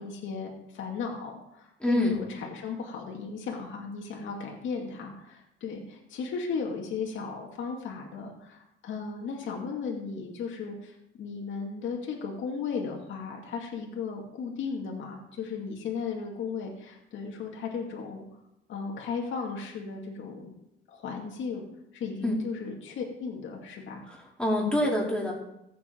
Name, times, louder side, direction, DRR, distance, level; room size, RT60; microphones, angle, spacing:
voice 1, 0.0-18.3 18.7-20.5 20.9-21.7 21.9-24.0, left 5 dB, 75° left, 0 dB, 2.3 m, -35 dB
voice 2, 1.8-2.2 22.2-22.3 24.1-25.3, left 1 dB, 5° left, -4 dB, 4.8 m, -26 dB
14.5 x 8.2 x 4.6 m, 0.84 s
cardioid pair, 90°, 20 cm